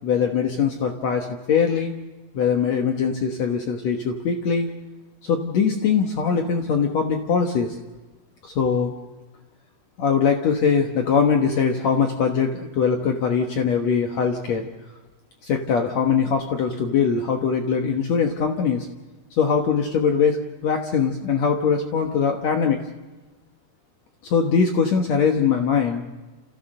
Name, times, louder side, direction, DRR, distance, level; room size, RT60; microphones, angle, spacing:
voice 1, 0.0-1.9 2.3-4.7 5.2-7.8 8.4-8.9 10.0-14.7 15.4-18.9 19.4-22.8 24.2-26.1, left 6 dB, 85° left, 4 dB, 1.5 m, -22 dB
30.0 x 16.0 x 6.6 m, 1.2 s
omnidirectional pair, 5.2 m